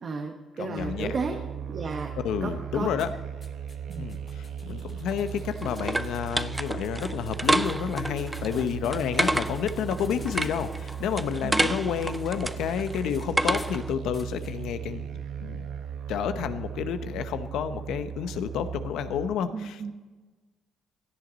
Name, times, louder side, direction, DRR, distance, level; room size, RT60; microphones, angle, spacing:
voice 1, 0.0-1.4 1.7-2.1 2.4-2.9 3.9-4.1 11.4-11.7 19.5-19.9, right 4 dB, 50° right, 3 dB, 1.2 m, -33 dB
voice 2, 0.6-1.1 2.2-3.1 4.0-15.7 16.1-19.9, left 8 dB, 80° left, 10 dB, 0.8 m, -30 dB
sound 1, 0.8-19.3, right 8 dB, 75° right, 1.0 m, -37 dB
sound 2, 3.0-13.8 14.1-14.5, left 3 dB, 30° left, 1.5 m, -51 dB
sound 3, 4.9-13.9, right 1 dB, 10° right, 0.5 m, -30 dB
17.0 x 10.5 x 4.0 m, 1.3 s
cardioid pair, 90°, 0 cm